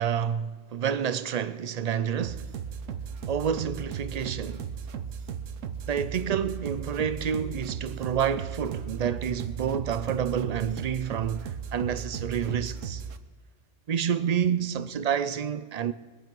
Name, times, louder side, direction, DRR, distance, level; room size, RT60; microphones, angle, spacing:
voice 1, 0.0-2.5 3.3-4.7 5.9-13.0 13.9-15.9, right 8 dB, 60° right, 0.4 m, -29 dB
sound 1, 2.2-13.2, right 7 dB, 85° right, 1.1 m, -36 dB
22.0 x 8.8 x 5.3 m
omnidirectional pair, 1.3 m